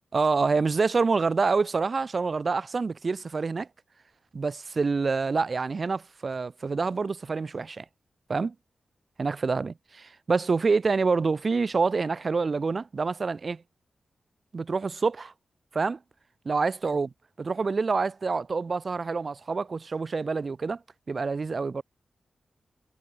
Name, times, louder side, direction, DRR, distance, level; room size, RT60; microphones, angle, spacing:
voice 1, 0.1-3.7 4.3-7.8 8.3-8.5 9.2-13.6 14.5-15.3 15.7-16.0 16.5-17.1 17.4-20.8 21.1-21.8, right 4 dB, 50° right, 0.6 m, -27 dB
cardioid pair, 60°, 0 cm